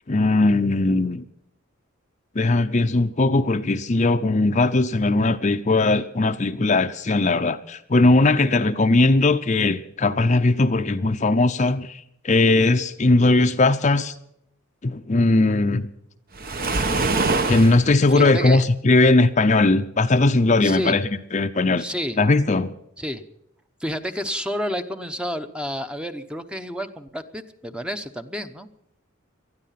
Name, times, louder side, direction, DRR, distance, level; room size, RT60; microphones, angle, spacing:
voice 1, 0.1-1.2 2.4-14.1 14.8-15.9 17.5-21.8 22.2-22.7, left 2 dB, 35° left, 9 dB, 0.6 m, -19 dB
Waves surf, 16.3-17.8, right 3 dB, 45° right, 1.1 m, -23 dB
voice 2, 17.0-17.6 18.1-18.6 20.6-21.0 21.8-22.2 23.0-23.2 23.8-28.7, equal, 5° right, 8 dB, 0.8 m, -30 dB
19.5 x 13.0 x 5.8 m, 0.75 s
head